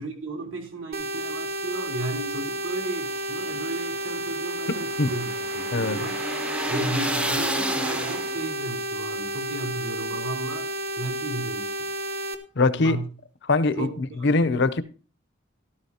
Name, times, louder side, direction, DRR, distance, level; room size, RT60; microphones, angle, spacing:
voice 1, 0.0-6.2 6.7-11.9 12.7-13.0 13.8-13.9 14.2-14.6, right 2 dB, 75° right, 3.3 m, -34 dB
sound 1, 0.9-12.3, right 1 dB, 50° right, 1.3 m, -31 dB
sound 2, 3.2-8.6, right 1 dB, 5° right, 0.6 m, -31 dB
voice 2, 12.6-13.0 13.4-14.8, left 3 dB, 60° left, 0.7 m, -22 dB
13.0 x 13.0 x 2.8 m
head